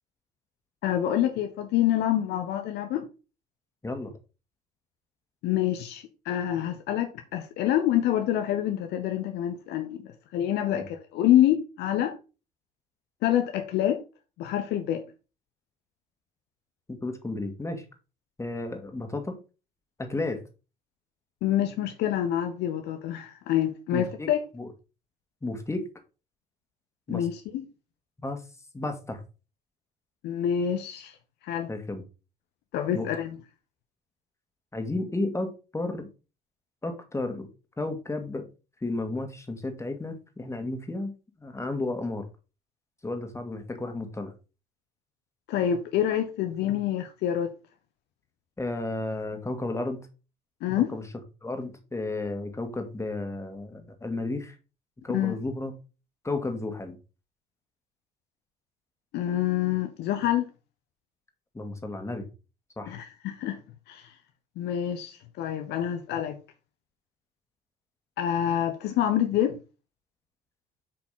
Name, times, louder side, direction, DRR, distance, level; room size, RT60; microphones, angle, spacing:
voice 1, 0.8-3.1 5.4-12.2 13.2-14.0 14.4-15.0 21.4-24.4 27.1-27.4 30.2-31.1 31.4-31.7 32.7-33.4 45.5-47.5 50.6-50.9 55.1-55.4 59.1-60.5 62.9-63.6 63.9-64.1 64.6-66.4 68.2-69.6, left 11 dB, 55° left, 1.0 m, -27 dB
voice 2, 16.9-17.8 18.4-19.4 20.0-20.4 23.9-24.7 25.4-25.9 27.1-27.3 28.2-28.4 28.7-29.2 31.7-32.0 32.9-33.1 34.7-36.1 36.8-37.5 37.8-38.5 38.8-41.1 41.4-42.2 43.0-44.3 48.6-50.0 50.8-51.0 51.4-54.6 55.0-55.7 56.2-57.0 61.5-62.3 62.8-63.0, left 2 dB, 15° left, 2.2 m, -33 dB
8.7 x 5.9 x 3.9 m
figure-of-eight pair, 50°, 21 cm